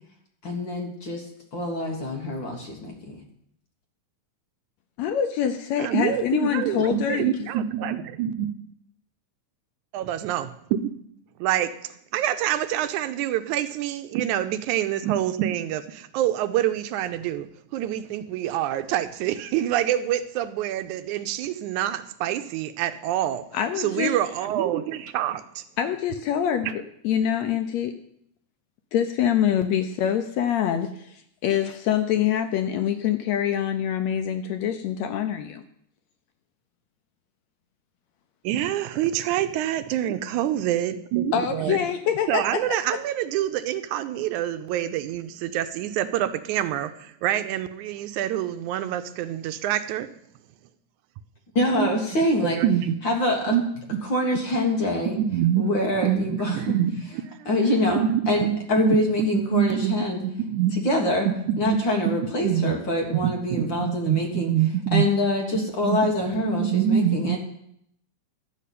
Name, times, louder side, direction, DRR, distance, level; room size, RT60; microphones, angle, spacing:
voice 1, 0.4-1.2 1.5-3.2 51.6-52.6 53.0-53.5 54.1-55.2 55.6-56.6 57.5-60.2 60.8-61.3 61.6-64.5 64.9-67.4, left 1 dB, 45° left, 1 dB, 1.9 m, -25 dB
voice 2, 5.0-7.5 23.5-24.1 25.8-27.9 28.9-35.6 41.3-42.4, left 9 dB, 75° left, 8 dB, 1.7 m, -25 dB
voice 3, 5.8-8.5 9.9-10.9 11.4-11.7 12.1-17.5 17.7-23.5 23.8-25.6 38.4-41.8 42.3-50.1 51.7-53.0 53.5-53.6 53.9-54.0 55.2-55.7 56.0-57.5 57.9-58.6 58.9-60.8 61.3-61.8 62.4-62.8 63.1-65.1 65.8-67.4, right 11 dB, 80° right, 10 dB, 2.0 m, -26 dB
12.5 x 5.5 x 8.4 m, 0.71 s
omnidirectional pair, 3.5 m